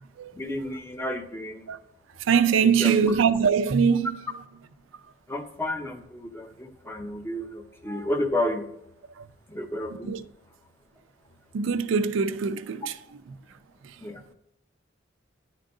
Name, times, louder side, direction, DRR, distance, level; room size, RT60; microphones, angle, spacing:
voice 1, 0.4-1.7 2.8-3.1 5.3-8.7 9.5-10.1 14.0-14.2, left 1 dB, 15° left, 0.6 m, -31 dB
voice 2, 2.2-4.2 9.2-9.3 10.0-10.2 11.5-13.4 13.8-13.9, right 6 dB, 90° right, 0.4 m, -23 dB
10.0 x 3.8 x 3.7 m
head